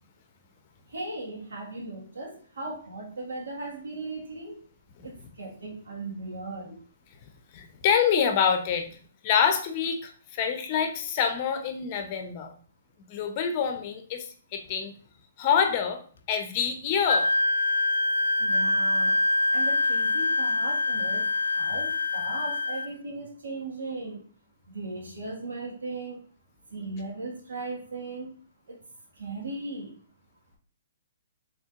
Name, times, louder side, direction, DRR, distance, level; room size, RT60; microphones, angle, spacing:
voice 1, 0.9-4.6 5.0-6.8 18.4-19.2 19.5-21.3 21.6-24.2 24.7-26.2 26.7-28.3 28.7-28.8 29.2-30.0, right 2 dB, 85° right, -2 dB, 1.5 m, -37 dB
voice 2, 7.5-8.9 9.2-12.5 13.1-14.9 15.4-16.0 16.3-17.3, left 7 dB, 40° left, 5 dB, 0.6 m, -26 dB
Wind instrument woodwind instrument, 17.1-22.9, left 2 dB, 80° left, 0.3 m, -25 dB
4.3 x 3.3 x 2.4 m, 0.43 s
hypercardioid pair, 140°, 0 cm